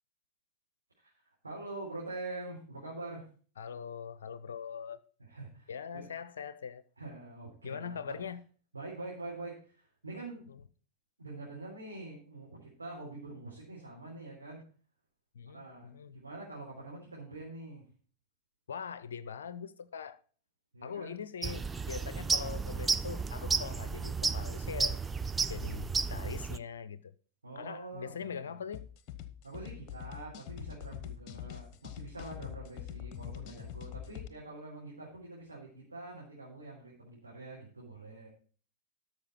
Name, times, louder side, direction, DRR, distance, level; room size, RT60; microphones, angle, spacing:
voice 1, 1.4-3.3 5.3-6.1 7.0-8.2 8.7-10.4 11.2-14.6 15.5-17.8 20.7-21.2 21.4-21.5 27.4-28.5 29.4-38.3, right 2 dB, 80° right, 3.7 m, -45 dB
voice 2, 3.6-5.0 5.7-6.8 7.6-8.4 10.5-10.6 15.3-16.2 18.7-20.2 20.8-25.0 25.5-27.1 27.6-28.9 31.3-31.6, left 7 dB, 65° left, 0.6 m, -42 dB
sound 1, 21.4-26.6, right 5 dB, 15° right, 0.4 m, -33 dB
sound 2, 28.7-34.3, left 11 dB, 40° left, 1.0 m, -44 dB
12.5 x 6.5 x 4.4 m
figure-of-eight pair, 90°, 0 cm